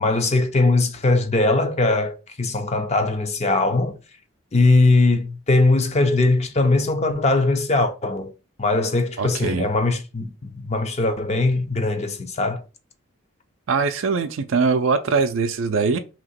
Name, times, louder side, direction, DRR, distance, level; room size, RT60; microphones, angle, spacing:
voice 1, 0.0-4.0 4.5-8.3 8.6-12.6, left 2 dB, 30° left, 0.5 m, -20 dB
voice 2, 9.2-9.7 13.7-16.0, right 4 dB, 65° right, 0.4 m, -22 dB
2.9 x 2.9 x 4.2 m
head